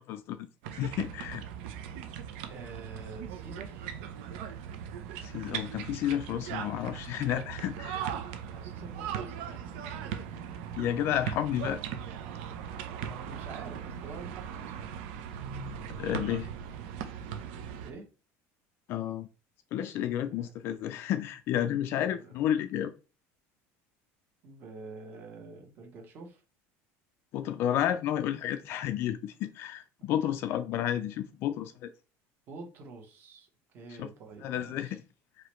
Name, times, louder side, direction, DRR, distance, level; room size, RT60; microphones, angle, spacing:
voice 1, 0.0-1.4 5.2-8.0 10.8-11.8 16.0-16.5 18.9-19.3 19.7-22.9 27.3-31.9 34.0-34.1 34.4-35.0, left 11 dB, 40° left, 0.3 m, -31 dB
sound 1, 0.6-17.9, right 8 dB, 85° right, 0.7 m, -39 dB
voice 2, 2.5-3.9 8.5-10.5 11.4-11.8 12.9-15.0 17.8-18.1 20.3-20.5 21.9-22.3 24.4-26.4 32.5-35.0, right 3 dB, 30° right, 1.1 m, -48 dB
4.9 x 3.0 x 3.1 m
cardioid pair, 180°, 6 cm